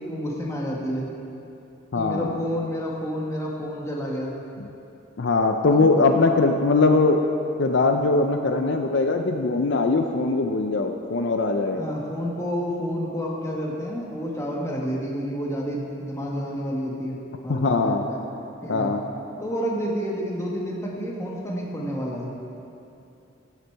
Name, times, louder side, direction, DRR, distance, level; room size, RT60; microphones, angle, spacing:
voice 1, 0.1-1.1 1.9-4.3 5.7-5.9 11.7-17.2 17.4-18.2 18.6-18.9 19.4-22.3, equal, 15° left, -3 dB, 1.6 m, -29 dB
voice 2, 1.9-2.4 5.2-7.2 7.6-11.9 17.5-18.1 18.7-19.0, left 3 dB, 65° left, 5 dB, 0.5 m, -21 dB
15.0 x 8.3 x 4.6 m, 2.8 s
head